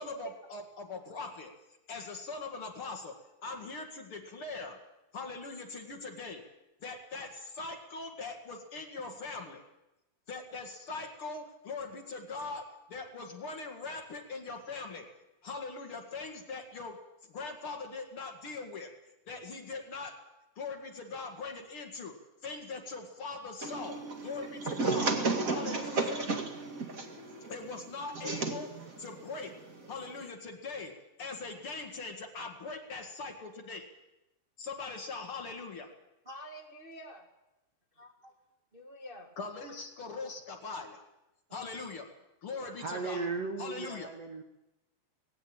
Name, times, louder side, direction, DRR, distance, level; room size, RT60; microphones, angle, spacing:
voice 1, 0.0-1.5 1.9-3.1 3.4-4.8 5.1-6.4 6.8-9.6 10.3-15.1 15.4-17.0 17.3-18.9 19.3-20.2 20.5-22.1 22.4-25.2 25.5-26.2 27.5-29.6 29.9-33.9 34.6-35.9 39.4-41.0 41.5-42.1 42.4-43.3 43.6-44.1, left 4 dB, 50° left, 4 dB, 1.8 m, -41 dB
sound 1, 23.6-30.3, right 3 dB, 40° right, 1.2 m, -34 dB
voice 2, 36.2-37.2 37.9-38.3 38.7-39.4 40.2-40.3 41.5-41.7, right 1 dB, 90° right, 1 dB, 0.5 m, -47 dB
voice 3, 42.6-44.4, right 4 dB, 55° right, 4 dB, 1.8 m, -36 dB
19.5 x 17.0 x 8.7 m, 0.94 s
omnidirectional pair, 4.8 m